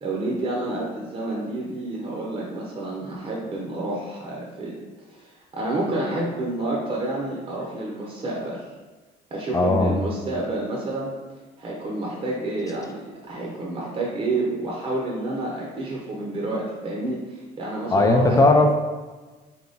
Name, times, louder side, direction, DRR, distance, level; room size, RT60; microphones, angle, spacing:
voice 1, 0.0-4.7 5.2-8.6 9.3-11.1 11.6-18.5, right 2 dB, 35° right, -3 dB, 0.8 m, -29 dB
voice 2, 9.5-10.0 17.9-18.7, left 2 dB, 20° left, 4 dB, 0.5 m, -17 dB
3.5 x 2.9 x 4.0 m, 1.3 s
cardioid pair, 110°, 17 cm